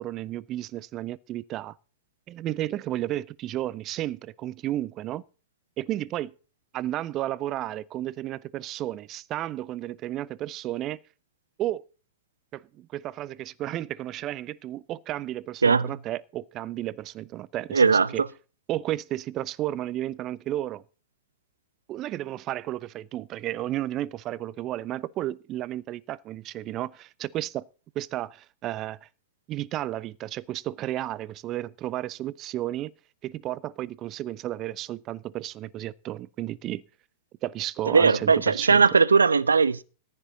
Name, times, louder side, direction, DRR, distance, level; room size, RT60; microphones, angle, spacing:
voice 1, 0.0-1.7 2.3-5.2 5.8-6.3 6.7-11.0 11.6-11.8 12.5-18.2 18.7-20.8 21.9-27.6 27.9-29.1 29.5-32.9 33.2-36.8 37.4-38.8, right 14 dB, 35° right, 0.7 m, -33 dB
voice 2, 15.6-15.9 17.7-18.1 37.9-39.8, right 5 dB, 80° right, 0.7 m, -19 dB
14.5 x 9.9 x 4.0 m
figure-of-eight pair, 100°, 0 cm